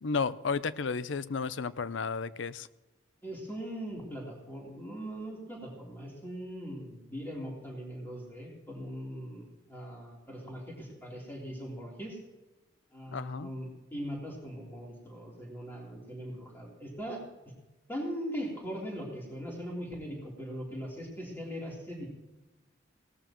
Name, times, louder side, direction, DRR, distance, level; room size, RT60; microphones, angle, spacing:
voice 1, 0.0-2.7 13.1-13.5, left 5 dB, 80° left, 16 dB, 0.5 m, -33 dB
voice 2, 3.2-9.4 9.7-12.2 12.9-17.2 17.9-22.1, equal, 10° left, -2 dB, 3.4 m, -40 dB
17.5 x 13.5 x 3.0 m, 1.1 s
head